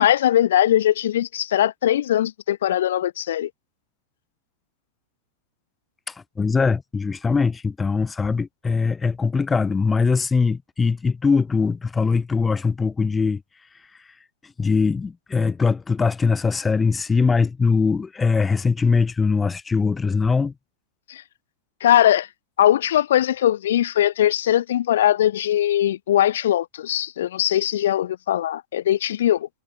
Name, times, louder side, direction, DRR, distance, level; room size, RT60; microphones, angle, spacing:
voice 1, 0.0-3.5 21.1-21.2 21.8-22.3 22.6-29.5, left 11 dB, 60° left, 0.7 m, -20 dB
voice 2, 6.4-13.4 14.6-20.5, left 4 dB, 15° left, 1.7 m, -21 dB
figure-of-eight pair, 90°, 0 cm